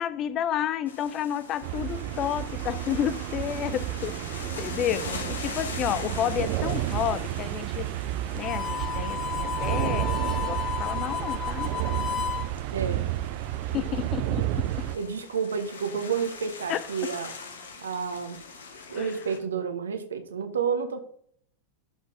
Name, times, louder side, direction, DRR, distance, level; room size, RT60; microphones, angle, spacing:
voice 1, 0.0-7.9 8.3-11.7 13.7-14.9 16.7-16.8 18.9-19.1, left 10 dB, 35° left, 0.4 m, -31 dB
sound 1, 0.9-19.4, left 4 dB, 65° left, 1.2 m, -43 dB
sound 2, 1.6-15.0, right 14 dB, 45° right, 0.4 m, -31 dB
Harmonica, 8.4-12.5, left 8 dB, 15° left, 1.6 m, -32 dB
voice 2, 12.7-13.0 13.7-13.9 14.3-14.5 14.9-17.3 17.8-18.4 18.9-21.0, right 6 dB, 70° right, 0.9 m, -30 dB
11.5 x 4.0 x 3.6 m
figure-of-eight pair, 90°, 0 cm